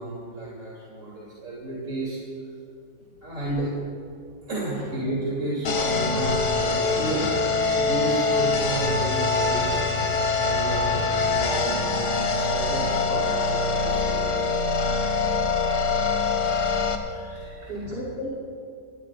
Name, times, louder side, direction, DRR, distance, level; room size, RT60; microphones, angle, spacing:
voice 1, 0.0-2.2 3.2-3.7 4.4-15.1 16.5-16.6 16.9-17.9, right 2 dB, 45° right, -7 dB, 3.6 m, -33 dB
sound 1, 5.6-16.9, left 3 dB, 70° left, 1.8 m, -24 dB
voice 2, 17.7-18.3, equal, 70° right, -9 dB, 3.6 m, -35 dB
28.0 x 18.5 x 2.5 m, 2.4 s
omnidirectional pair, 1.9 m